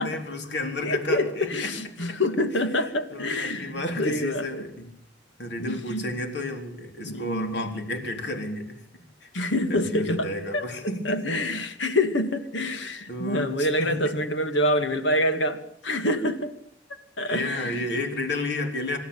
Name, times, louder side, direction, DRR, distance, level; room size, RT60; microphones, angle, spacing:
voice 1, 0.0-1.7 2.1-2.2 3.1-4.9 5.4-8.8 9.2-11.2 13.1-13.9 17.3-19.0, left 2 dB, 65° left, 5 dB, 4.1 m, -32 dB
voice 2, 0.8-4.7 5.6-6.0 7.0-7.6 9.3-10.3 10.5-16.5 17.2-17.8, left 1 dB, 80° left, 9 dB, 2.3 m, -26 dB
26.0 x 12.5 x 8.9 m, 0.68 s
head